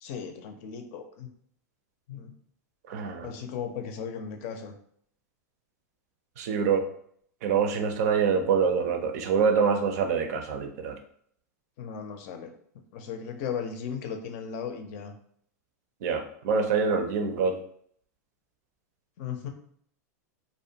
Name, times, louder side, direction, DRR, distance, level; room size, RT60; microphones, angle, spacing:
voice 1, 0.0-1.3 2.1-2.4 3.2-4.7 11.8-12.5 12.9-15.1 19.2-19.5, left 7 dB, 55° left, 5 dB, 0.5 m, -36 dB
voice 2, 2.9-3.3 6.4-6.9 7.4-11.0 16.0-17.6, right 6 dB, 65° right, 6 dB, 0.5 m, -25 dB
2.5 x 2.1 x 2.7 m, 0.63 s
hypercardioid pair, 120°, 9 cm